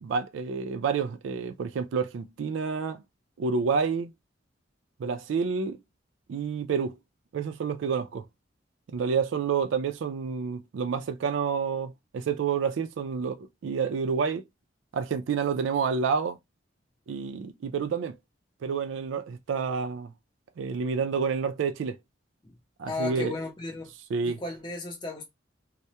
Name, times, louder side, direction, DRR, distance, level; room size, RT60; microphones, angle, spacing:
voice 1, 0.0-3.0 3.4-4.1 5.0-5.8 6.3-7.0 7.3-8.2 8.9-14.4 14.9-16.4 17.1-18.2 18.6-20.1 20.6-22.0 22.8-23.3 24.1-24.4, right 5 dB, 80° right, 0.3 m, -29 dB
voice 2, 22.9-23.9 24.2-25.2, left 3 dB, 25° left, 0.6 m, -35 dB
2.2 x 2.0 x 2.7 m
head